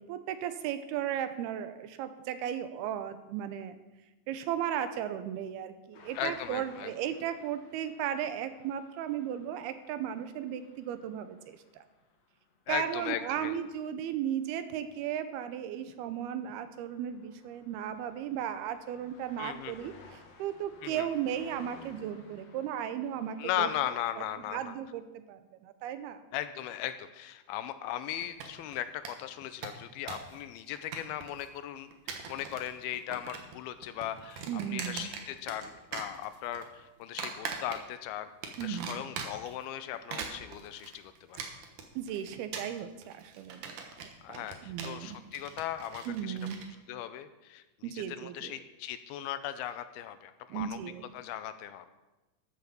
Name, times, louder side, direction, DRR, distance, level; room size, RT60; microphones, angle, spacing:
voice 1, 0.0-3.8 4.3-11.8 12.7-23.7 24.2-26.2 34.5-35.1 38.6-39.0 40.1-40.2 42.0-43.8 44.3-45.2 46.1-46.6 47.8-48.6 50.5-51.1, right 10 dB, 80° right, 11 dB, 2.7 m, -36 dB
sound 1, 5.9-24.6, left 3 dB, 60° left, 1.7 m, -58 dB
voice 2, 6.2-6.9 12.7-13.5 19.4-19.9 20.8-21.1 23.4-24.7 26.3-38.3 38.6-41.5 44.2-46.4 46.9-50.8 51.1-51.9, left 11 dB, 85° left, 11 dB, 2.5 m, -38 dB
sound 2, 28.2-28.8 29.1-29.2 29.4-30.3 30.6-31.4 31.9-32.7 32.9-33.6 33.8-35.7 35.9-36.7 37.2-38.0 38.4-39.5 39.9-46.7, right 6 dB, 65° right, 2.5 m, -41 dB
13.0 x 7.0 x 7.0 m, 1.1 s
omnidirectional pair, 4.5 m